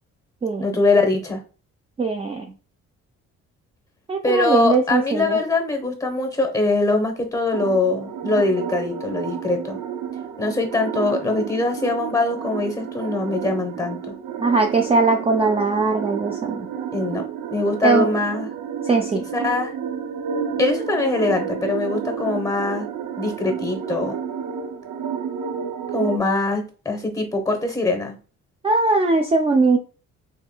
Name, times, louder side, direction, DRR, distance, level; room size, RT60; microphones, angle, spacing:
voice 1, 0.6-1.4 4.2-9.8 10.4-14.1 16.9-18.5 19.3-19.7 20.6-22.9 23.2-24.2 25.9-28.2, left 3 dB, 10° left, 5 dB, 0.9 m, -22 dB
voice 2, 2.0-2.5 4.1-5.4 14.4-16.7 17.8-18.1 18.8-19.2 28.6-29.8, right 3 dB, 20° right, 3 dB, 0.4 m, -20 dB
sound 1, 7.5-26.2, right 8 dB, 80° right, 0.6 m, -30 dB
3.6 x 3.2 x 2.2 m, 0.37 s
cardioid pair, 90°, 30 cm